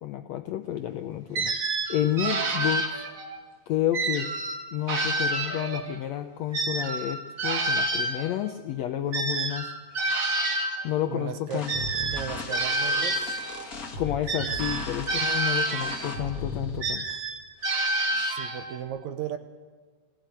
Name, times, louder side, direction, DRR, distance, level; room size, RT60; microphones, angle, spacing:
voice 1, 0.0-3.0 3.7-4.3 4.7-9.7 10.8-11.7 13.9-17.0, left 11 dB, 80° left, 8 dB, 1.5 m, -30 dB
sound 1, 1.3-3.4 3.9-6.0 6.5-10.9 11.7-13.6 14.3-16.2 16.8-18.8, right 2 dB, 35° right, 1.5 m, -28 dB
voice 2, 11.1-11.7 12.1-13.4 18.2-19.4, right 9 dB, 70° right, 10 dB, 2.0 m, -36 dB
sound 2, 11.5-16.8, left 3 dB, 30° left, 1.9 m, -37 dB
20.0 x 15.0 x 9.0 m, 1.5 s
omnidirectional pair, 3.8 m